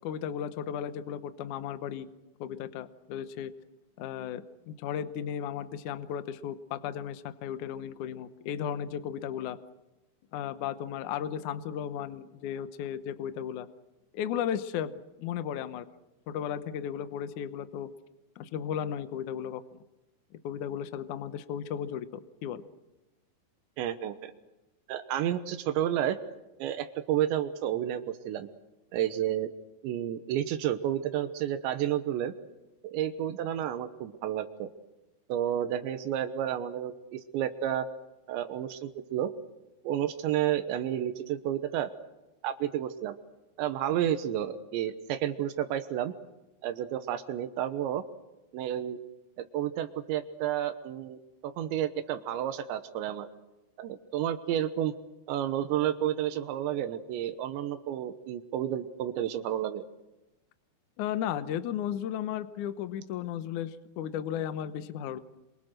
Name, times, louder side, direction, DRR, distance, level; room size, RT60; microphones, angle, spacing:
voice 1, 0.0-2.1 2.4-3.5 4.0-9.6 10.3-13.7 14.1-15.9 16.3-17.9 18.4-19.6 20.4-22.6 61.0-65.2, left 9 dB, 85° left, 11 dB, 1.7 m, -35 dB
voice 2, 23.8-24.3 24.9-26.2 26.6-28.5 28.9-29.5 29.8-32.3 32.8-34.7 35.3-37.9 38.3-39.3 39.8-41.9 42.4-43.2 43.6-46.1 46.6-48.0 48.5-49.0 49.5-53.3 53.8-54.9 55.3-59.8, right 11 dB, 85° right, 9 dB, 3.4 m, -31 dB
28.0 x 24.5 x 6.5 m, 1.0 s
omnidirectional pair, 5.1 m